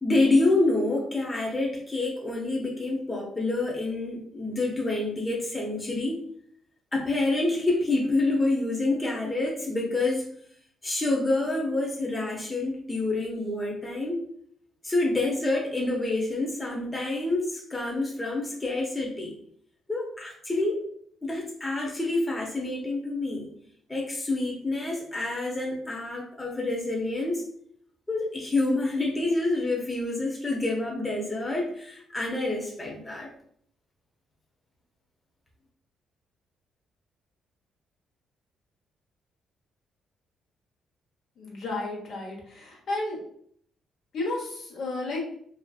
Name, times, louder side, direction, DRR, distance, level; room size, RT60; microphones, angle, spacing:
voice 1, 0.0-6.2 6.9-10.3 10.8-14.2 14.8-19.3 19.9-20.8 21.2-23.5 23.9-27.4 28.1-33.3, left 2 dB, 20° left, -2 dB, 0.6 m, -27 dB
voice 2, 41.4-43.2 44.1-45.2, left 2 dB, 65° left, -2 dB, 0.9 m, -32 dB
2.5 x 2.4 x 2.3 m, 0.63 s
cardioid pair, 90°, 0 cm